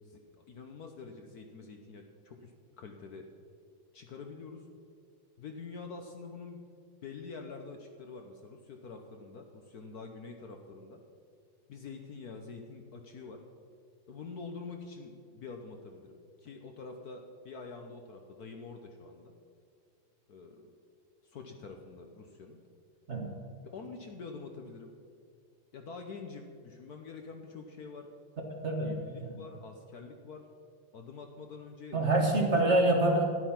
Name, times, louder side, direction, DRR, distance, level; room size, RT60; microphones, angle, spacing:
voice 1, 0.0-3.3 3.9-4.6 5.4-6.6 7.0-11.0 11.7-13.4 14.1-19.3 20.3-20.7 21.2-22.6 23.6-24.9 25.7-28.1 28.8-30.5 30.9-32.0 32.4-32.8, left 4 dB, 60° left, 4 dB, 1.2 m, -46 dB
voice 2, 28.6-29.4 31.9-33.2, right 1 dB, 35° right, 1 dB, 1.6 m, -26 dB
12.5 x 10.5 x 5.8 m, 2.2 s
omnidirectional pair, 2.2 m